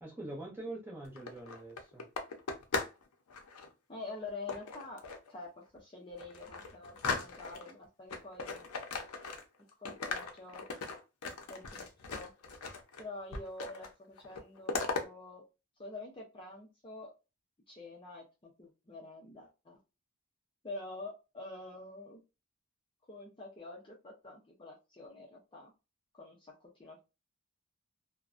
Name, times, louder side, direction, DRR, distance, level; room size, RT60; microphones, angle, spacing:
voice 1, 0.0-2.0, right 2 dB, 10° right, 0.8 m, -44 dB
sound 1, 1.0-3.0 3.3-3.7 4.5-5.3 5.8-5.9 6.2-7.7 8.1-9.6 9.9-13.0 13.3-13.9 14.2-15.0, left 4 dB, 85° left, 0.6 m, -38 dB
voice 2, 3.9-5.0 5.3-8.7 9.8-10.6 11.5-12.3 13.0-15.4 15.8-17.1 17.7-19.8 20.6-22.2 23.1-25.7 26.1-27.0, left 2 dB, 25° left, 0.5 m, -47 dB
2.5 x 2.1 x 2.4 m
head